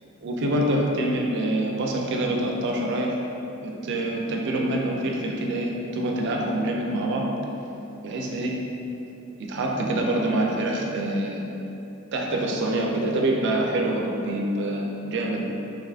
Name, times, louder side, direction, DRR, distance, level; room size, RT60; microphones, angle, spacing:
voice 1, 0.2-3.2 3.6-7.3 8.0-8.5 9.5-11.5 12.1-15.4, right 1 dB, 55° right, 0 dB, 0.4 m, -25 dB
3.6 x 2.4 x 2.2 m, 2.9 s
head